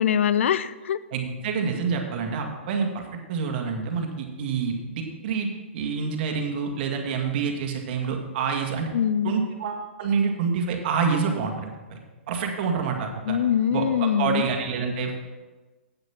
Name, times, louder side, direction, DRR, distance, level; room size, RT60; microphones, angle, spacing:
voice 1, 0.0-1.0 8.9-9.3 13.3-14.4, left 9 dB, 70° left, 16 dB, 0.5 m, -23 dB
voice 2, 1.1-8.9 9.2-12.0 12.3-13.4 13.7-15.2, right 5 dB, 50° right, 3 dB, 2.0 m, -27 dB
8.8 x 7.9 x 6.0 m, 1.2 s
hypercardioid pair, 135°, 7 cm